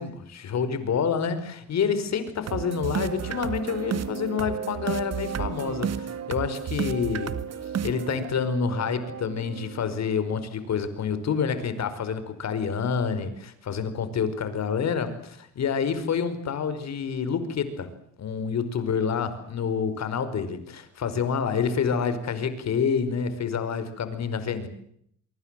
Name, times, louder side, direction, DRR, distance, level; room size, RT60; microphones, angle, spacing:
voice 1, 0.0-7.4 7.8-17.9 18.2-24.7, left 6 dB, 60° left, 12 dB, 5.2 m, -28 dB
sound 1, 2.5-10.4, right 8 dB, 55° right, 2.1 m, -33 dB
25.0 x 24.5 x 7.7 m, 0.70 s
cardioid pair, 90°, 30 cm